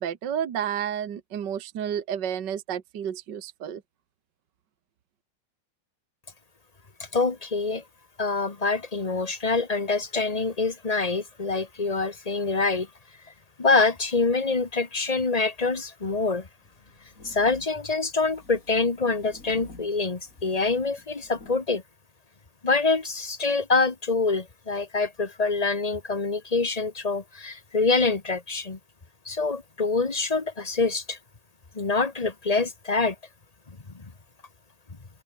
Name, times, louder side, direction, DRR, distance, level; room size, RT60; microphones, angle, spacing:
voice 1, 0.0-3.8, right 9 dB, 60° right, 1.9 m, -31 dB
voice 2, 7.1-7.8 8.2-12.9 13.6-16.5 17.2-21.8 22.6-28.8 29.2-31.2 31.7-33.1 33.7-34.0, left 3 dB, 20° left, 1.3 m, -25 dB
sound 1, 16.6-21.7, left 3 dB, 40° left, 4.4 m, -49 dB
open air
omnidirectional pair, 2.3 m